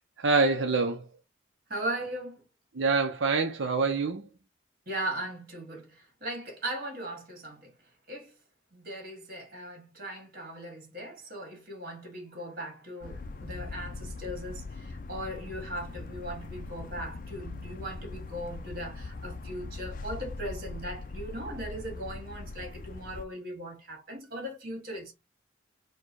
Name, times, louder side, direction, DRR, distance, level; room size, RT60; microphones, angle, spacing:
voice 1, 0.2-1.0 2.8-4.2, right 4 dB, 85° right, 0.7 m, -25 dB
voice 2, 1.7-2.4 4.9-7.7 8.1-8.3 8.7-25.1, right 1 dB, 50° right, 2.0 m, -38 dB
sound 1, 13.0-23.3, left 3 dB, 45° left, 0.4 m, -41 dB
4.5 x 2.2 x 4.6 m
head